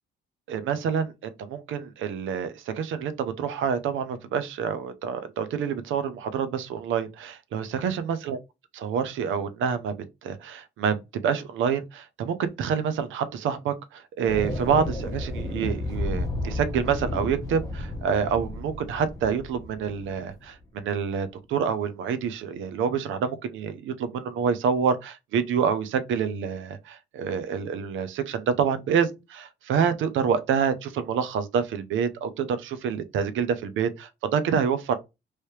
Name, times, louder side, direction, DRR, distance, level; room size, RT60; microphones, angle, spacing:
voice 1, 0.5-8.4 8.8-9.9 10.2-34.9, right 7 dB, 80° right, 0.7 m, -27 dB
sound 1, 14.3-20.4, left 1 dB, 20° left, 1.1 m, -32 dB
3.2 x 2.8 x 3.1 m
cardioid pair, 90°, 20 cm